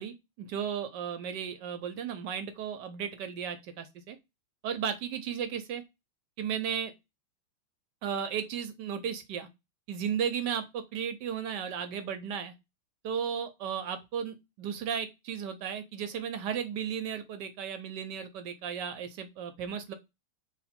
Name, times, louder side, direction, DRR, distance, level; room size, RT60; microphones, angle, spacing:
voice 1, 0.0-4.2 4.6-5.8 6.4-6.9 8.0-9.5 9.9-12.5 13.0-19.9, right 8 dB, 75° right, 9 dB, 1.0 m, -35 dB
3.2 x 2.9 x 4.2 m, 0.23 s
omnidirectional pair, 2.3 m